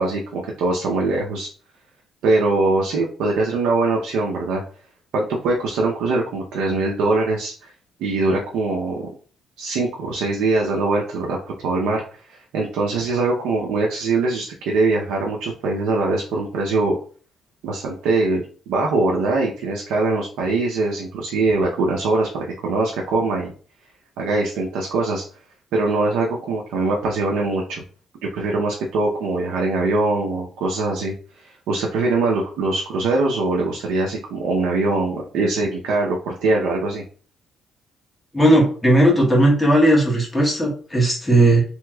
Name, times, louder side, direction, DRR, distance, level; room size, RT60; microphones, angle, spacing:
voice 1, 0.0-1.5 2.2-4.6 5.1-7.7 8.0-9.1 9.6-11.4 11.6-12.0 12.3-17.0 17.6-23.5 24.2-25.2 25.7-27.8 28.2-37.0, right 3 dB, 90° right, -1 dB, 0.6 m, -22 dB
voice 2, 38.3-41.6, right 1 dB, 10° left, -3 dB, 1.4 m, -16 dB
3.4 x 3.0 x 2.3 m, 0.41 s
cardioid pair, 90°, 0 cm